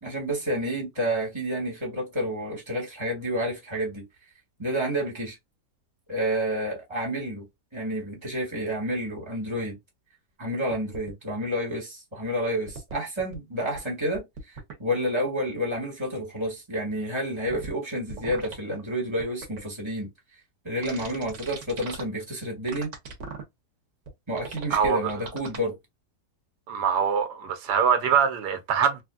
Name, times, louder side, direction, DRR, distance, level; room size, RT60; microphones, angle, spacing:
voice 1, 0.0-4.0 4.6-5.4 6.1-7.4 7.7-9.8 10.4-14.2 14.8-20.1 20.6-22.9 24.3-25.8, equal, 20° right, 1.4 m, -29 dB
sound 1, 10.7-11.1 12.7-13.3 13.7-13.8 14.1-14.7 17.5-17.7 18.1-18.6 19.2-19.6 20.8-22.0 22.7-23.4 24.1-24.2 24.4-25.6, right 4 dB, 55° right, 1.1 m, -38 dB
voice 2, 24.7-25.1 26.7-29.0, right 7 dB, 80° right, 1.3 m, -23 dB
3.3 x 2.5 x 2.3 m
omnidirectional pair, 1.8 m